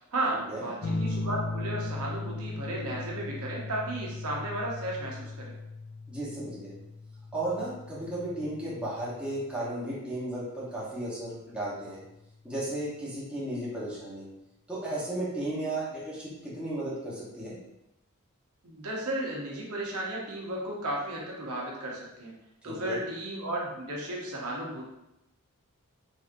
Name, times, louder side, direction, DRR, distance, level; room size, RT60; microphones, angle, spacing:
voice 1, 0.0-5.5 18.6-22.3 22.6-24.9, right 1 dB, 75° right, -3 dB, 0.7 m, -34 dB
sound 1, 0.8-9.9 11.3-11.9, left 2 dB, 45° left, 0.5 m, -37 dB
voice 2, 6.1-6.7 7.3-12.0 12.4-14.2 14.7-17.6 22.6-23.0, right 1 dB, 5° right, -9 dB, 0.9 m, -34 dB
3.3 x 2.7 x 2.5 m, 0.89 s
head